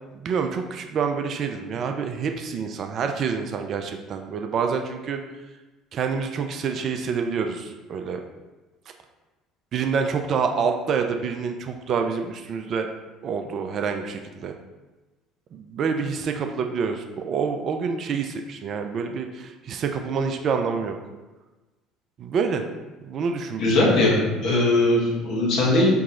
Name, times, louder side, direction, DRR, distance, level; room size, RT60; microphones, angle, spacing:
voice 1, 0.1-5.2 5.9-8.2 9.7-12.9 13.2-14.5 15.5-21.0 22.2-22.6 23.0-24.2, right 6 dB, 45° right, 5 dB, 0.4 m, -27 dB
voice 2, 23.6-25.9, left 2 dB, 55° left, -4 dB, 1.4 m, -20 dB
4.6 x 3.1 x 3.6 m, 1.2 s
figure-of-eight pair, 60°, 0 cm